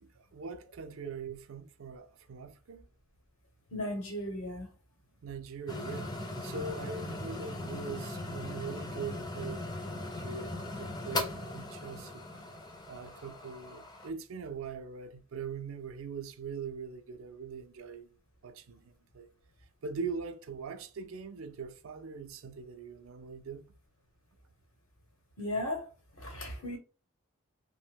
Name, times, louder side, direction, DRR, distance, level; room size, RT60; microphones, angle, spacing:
voice 1, 0.0-2.9 5.2-12.2 12.9-18.1 18.4-19.3 19.8-23.7, right 5 dB, 75° right, 0.4 m, -42 dB
voice 2, 3.7-4.7 25.4-25.9 26.2-26.8, left 1 dB, 70° left, 0.9 m, -36 dB
sound 1, 5.7-14.1, left 2 dB, 20° left, 0.4 m, -39 dB
2.8 x 2.1 x 3.3 m
head